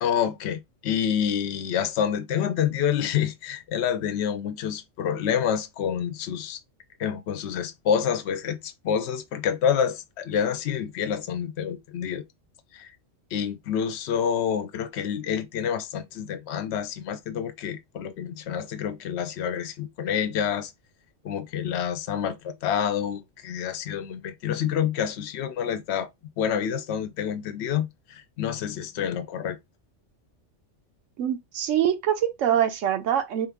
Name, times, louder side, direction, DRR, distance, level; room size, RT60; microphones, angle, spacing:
voice 1, 0.0-6.6 7.0-12.2 12.7-12.9 13.3-20.7 21.2-26.1 26.4-29.6, left 8 dB, 65° left, 0.8 m, -28 dB
voice 2, 31.2-33.5, right 10 dB, 80° right, 1.0 m, -24 dB
3.8 x 2.4 x 3.5 m
omnidirectional pair, 1.3 m